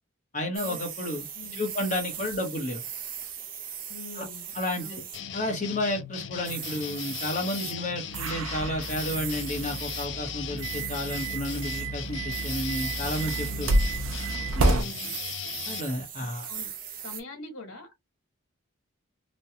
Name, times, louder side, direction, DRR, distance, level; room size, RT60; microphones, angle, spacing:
voice 1, 0.3-1.2 1.6-2.8 4.2-4.3 4.5-5.0 5.3-13.7 14.5-14.9 15.7-16.5, left 1 dB, 35° left, 1.1 m, -31 dB
sound 1, 0.5-5.2 6.4-7.7 8.1-8.3 8.8-10.1 10.6-11.9 12.3-14.1 14.7-17.2, right 8 dB, 45° right, 0.6 m, -39 dB
voice 2, 1.1-1.7 2.2-2.5 3.9-5.0 13.5-13.9 14.6-15.1 16.2-16.7 17.0-18.0, left 2 dB, 85° left, 1.6 m, -44 dB
sound 2, 5.1-15.8, left 9 dB, 60° left, 0.4 m, -38 dB
sound 3, 8.1-14.8, right 2 dB, 85° right, 0.6 m, -30 dB
3.2 x 2.2 x 2.8 m
head